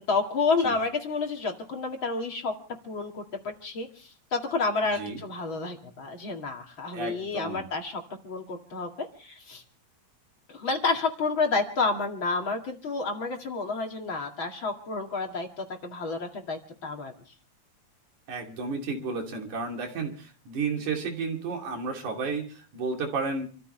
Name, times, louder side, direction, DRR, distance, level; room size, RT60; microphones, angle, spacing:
voice 1, 0.1-2.6 2.8-9.6 10.5-17.1, left 4 dB, 45° left, 2 dB, 2.8 m, -30 dB
voice 2, 6.9-7.7 18.3-23.5, right 4 dB, 85° right, 1 dB, 4.3 m, -32 dB
28.5 x 14.0 x 3.3 m, 0.38 s
omnidirectional pair, 3.3 m